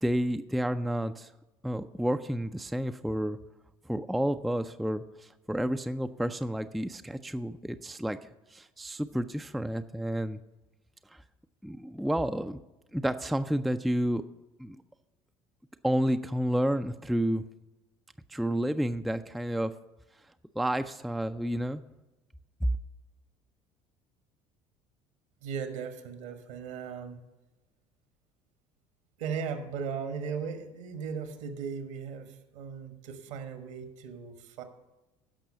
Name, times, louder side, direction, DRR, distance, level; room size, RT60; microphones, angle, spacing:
voice 1, 0.0-1.3 1.6-3.4 3.9-8.2 8.5-10.4 11.1-11.2 11.6-12.6 12.9-14.2 14.6-14.8 15.8-17.4 18.3-19.7 20.6-21.8 22.6-22.7, equal, ahead, 9 dB, 0.4 m, -30 dB
voice 2, 25.4-27.2 29.2-34.6, right 6 dB, 65° right, 8 dB, 1.4 m, -37 dB
15.5 x 6.0 x 5.5 m, 1.0 s
figure-of-eight pair, 60°, 18 cm